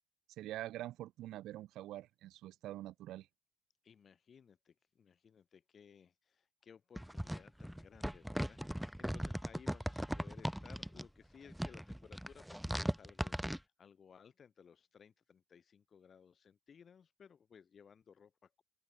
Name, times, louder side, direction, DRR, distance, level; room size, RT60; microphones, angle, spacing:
voice 1, 0.4-3.3, right 14 dB, 85° right, 0.9 m, -45 dB
voice 2, 3.8-18.6, left 7 dB, 50° left, 6.0 m, -60 dB
sound 1, 7.0-11.1 11.5-13.6, equal, ahead, 0.7 m, -39 dB
open air
cardioid pair, 90°, 0 cm